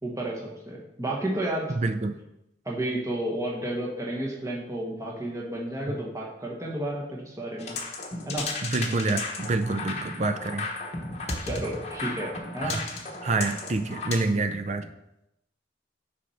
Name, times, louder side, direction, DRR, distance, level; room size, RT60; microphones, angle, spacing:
voice 1, 0.0-1.7 2.6-7.8 8.3-8.5 11.4-12.8, right 1 dB, 15° right, -3 dB, 1.2 m, -31 dB
voice 2, 1.8-2.1 8.6-10.7 12.6-12.8 13.2-14.9, right 3 dB, 40° right, 9 dB, 0.5 m, -27 dB
sound 1, 7.6-14.2, left 3 dB, 35° left, 0.9 m, -34 dB
6.3 x 4.2 x 5.7 m, 0.86 s
head